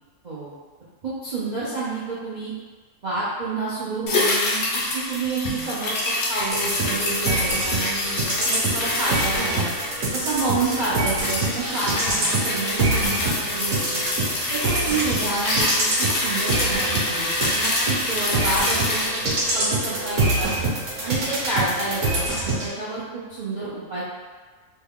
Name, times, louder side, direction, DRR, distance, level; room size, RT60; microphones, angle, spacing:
voice 1, 1.0-2.5 3.0-4.6 4.9-9.7 10.1-14.1 14.5-20.5 21.0-24.0, right 3 dB, 80° right, -10 dB, 0.4 m, -29 dB
sound 1, 4.1-20.6 20.9-21.0, left 2 dB, 60° left, 0.7 m, -26 dB
sound 2, 6.5-22.7, right 2 dB, 55° right, 1.1 m, -26 dB
3.2 x 2.3 x 3.5 m, 1.4 s
omnidirectional pair, 1.8 m